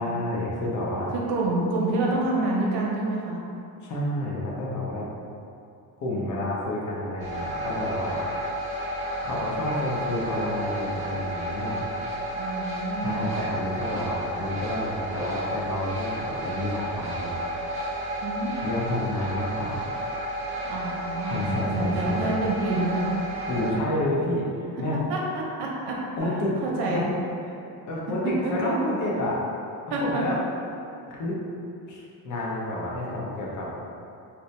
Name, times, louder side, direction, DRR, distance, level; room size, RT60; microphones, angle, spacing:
voice 1, 0.0-1.1 3.8-5.0 6.0-8.2 9.2-11.8 13.0-17.3 18.6-19.8 21.3-22.4 23.5-25.0 26.2-26.6 26.9-27.0 27.9-29.4 30.0-30.4 31.1-31.4 31.9-33.7, left 1 dB, 45° left, -4 dB, 0.7 m, -29 dB
voice 2, 1.1-3.4 12.4-13.3 18.2-18.5 20.6-23.1 25.1-26.4 26.6-27.0 28.4-28.8 29.9-30.2, right 2 dB, 75° right, -3 dB, 0.7 m, -28 dB
sound 1, 7.2-23.7, right 1 dB, 15° right, 0.7 m, -32 dB
2.8 x 2.1 x 3.1 m, 2.7 s
cardioid pair, 130°, 40 cm